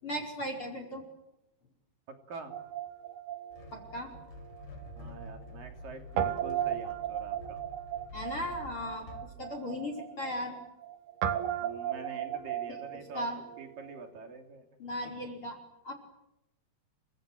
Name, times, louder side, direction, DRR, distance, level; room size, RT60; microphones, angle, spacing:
voice 1, 0.0-1.0 3.7-4.1 8.1-9.1 9.4-10.6 13.1-13.4 14.8-15.6 15.8-15.9, equal, 30° left, 5 dB, 5.5 m, -36 dB
Guitar, 2.5-4.9 5.2-5.3 6.2-14.0, right 10 dB, 80° right, 3.9 m, -36 dB
sound 1, 3.5-9.3, left 1 dB, 65° left, 6.9 m, -48 dB
voice 2, 5.0-7.6 11.6-13.3 13.6-14.7, right 4 dB, 60° right, 5 dB, 4.7 m, -46 dB
29.5 x 25.0 x 7.8 m, 0.85 s
omnidirectional pair, 4.5 m